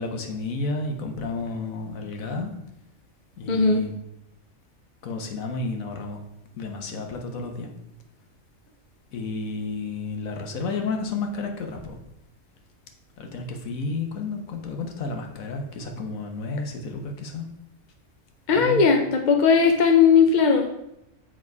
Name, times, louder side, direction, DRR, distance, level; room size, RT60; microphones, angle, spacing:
voice 1, 0.0-2.5 3.4-3.9 5.0-6.2 6.5-7.7 9.1-12.0 13.2-17.5 18.5-18.8, left 3 dB, 80° left, 4 dB, 1.4 m, -31 dB
voice 2, 3.5-3.8 18.5-20.7, left 5 dB, 45° left, 3 dB, 0.6 m, -18 dB
7.5 x 3.7 x 4.6 m, 0.82 s
omnidirectional pair, 1.4 m